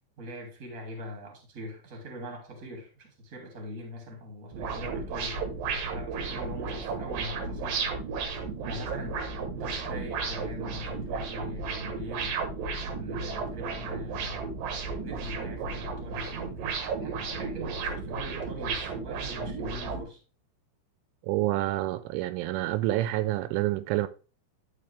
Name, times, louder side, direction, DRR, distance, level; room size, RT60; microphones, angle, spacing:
voice 1, 0.2-5.4 5.9-7.8 8.6-9.2 9.5-12.4 12.9-14.4 15.0-20.2, equal, 25° right, 2.0 m, -42 dB
sound 1, 4.5-20.0, right 4 dB, 70° right, 2.3 m, -34 dB
voice 2, 21.2-24.1, right 16 dB, 85° right, 2.9 m, -28 dB
11.0 x 5.5 x 3.4 m
omnidirectional pair, 5.5 m